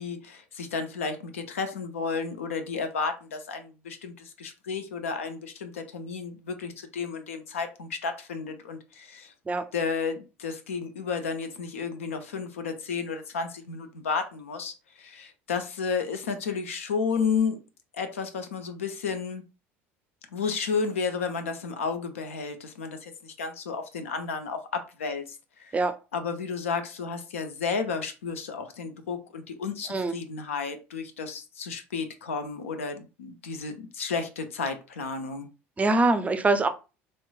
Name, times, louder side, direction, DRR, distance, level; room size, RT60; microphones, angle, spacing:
voice 1, 0.0-9.3 9.7-17.6 17.9-19.4 20.3-25.8 26.1-35.5, left 5 dB, 85° left, 0.5 m, -32 dB
voice 2, 35.8-36.7, right 3 dB, 20° right, 0.4 m, -23 dB
3.1 x 3.0 x 2.3 m
hypercardioid pair, 70°, 7 cm